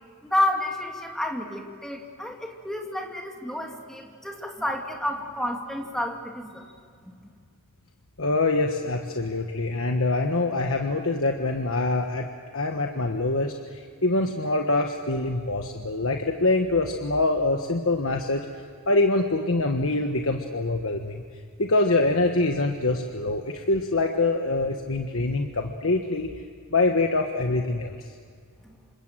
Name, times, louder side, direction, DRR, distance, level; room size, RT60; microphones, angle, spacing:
voice 1, 0.2-6.6 7.0-7.1, left 1 dB, ahead, 1 dB, 2.6 m, -30 dB
voice 2, 8.2-12.3 12.5-18.4 18.9-21.2 21.6-26.3 26.7-28.0, left 2 dB, 65° left, 3 dB, 1.4 m, -24 dB
27.5 x 26.0 x 7.6 m, 2.1 s
head